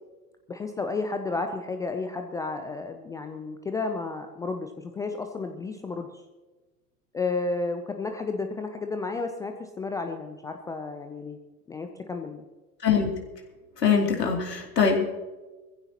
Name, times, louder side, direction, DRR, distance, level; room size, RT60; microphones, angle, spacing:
voice 1, 0.5-6.2 7.1-11.4 11.7-12.4, left 3 dB, 10° left, 6 dB, 0.4 m, -32 dB
voice 2, 13.8-15.1, left 6 dB, 75° left, 1 dB, 3.1 m, -22 dB
21.5 x 15.0 x 2.9 m, 1.2 s
figure-of-eight pair, 95°, 48 cm